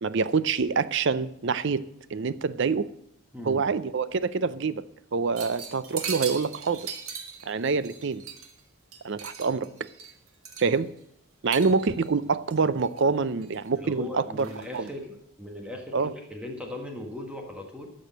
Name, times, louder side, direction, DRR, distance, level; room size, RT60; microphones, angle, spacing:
voice 1, 0.0-1.8 2.1-2.9 3.4-4.8 5.1-6.9 7.5-8.2 9.0-9.7 10.6-10.9 11.4-14.5 14.7-14.9 15.9-16.1, right 4 dB, 55° right, 15 dB, 0.5 m, -26 dB
sound 1, 5.4-8.6 8.9-11.0 11.5-12.1 12.5-13.0 13.4-13.9 14.4-14.9, right 7 dB, 80° right, 1.6 m, -39 dB
voice 2, 13.7-17.9, left 1 dB, 5° right, 2 dB, 1.5 m, -38 dB
13.5 x 6.4 x 7.5 m, 0.72 s
head